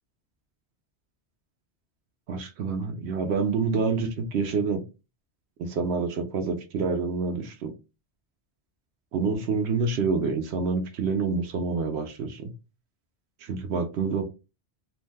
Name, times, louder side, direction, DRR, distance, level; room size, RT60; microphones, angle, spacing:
voice 1, 2.3-4.8 5.6-7.7 9.1-12.5 13.4-14.2, right 4 dB, 75° right, 0.9 m, -27 dB
2.6 x 2.1 x 3.3 m
omnidirectional pair, 1.2 m